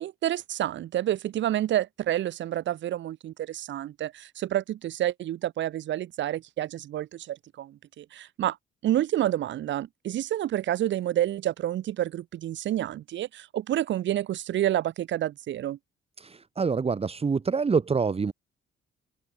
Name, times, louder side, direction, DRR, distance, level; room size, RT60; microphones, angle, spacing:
voice 1, 0.0-8.6 8.8-15.8, right 12 dB, 70° right, 0.9 m, -29 dB
voice 2, 16.2-18.3, right 5 dB, 30° right, 1.4 m, -26 dB
open air
cardioid pair, 90°, 20 cm